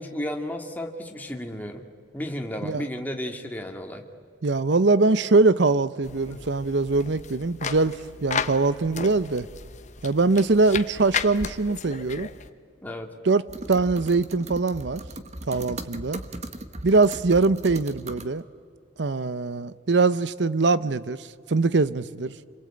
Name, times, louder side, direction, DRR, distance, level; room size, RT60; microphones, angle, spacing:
voice 1, 0.0-1.9 2.1-4.0 6.2-6.4 12.8-13.1, left 1 dB, 10° left, 2.1 m, -33 dB
voice 2, 4.4-9.5 10.0-12.3 13.2-13.4 13.7-15.0 15.5-16.2 16.8-18.4 19.0-22.3, right 3 dB, 65° right, 0.8 m, -22 dB
sound 1, 6.0-12.5, left 6 dB, 40° left, 1.1 m, -34 dB
sound 2, 13.5-18.3, right 2 dB, 35° right, 1.3 m, -38 dB
29.0 x 23.0 x 8.8 m
head